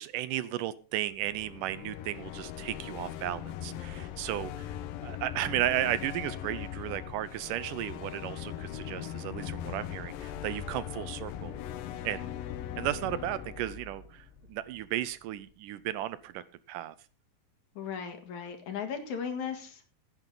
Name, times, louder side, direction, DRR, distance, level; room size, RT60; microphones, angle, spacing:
voice 1, 0.0-4.7 5.0-11.6 12.0-12.4 12.8-16.9, right 13 dB, 80° right, 16 dB, 2.2 m, -34 dB
sound 1, 1.1-15.1, left 10 dB, 85° left, 2.6 m, -40 dB
voice 2, 17.8-19.9, left 7 dB, 60° left, 6 dB, 3.1 m, -37 dB
16.0 x 9.1 x 3.9 m, 0.34 s
omnidirectional pair, 3.9 m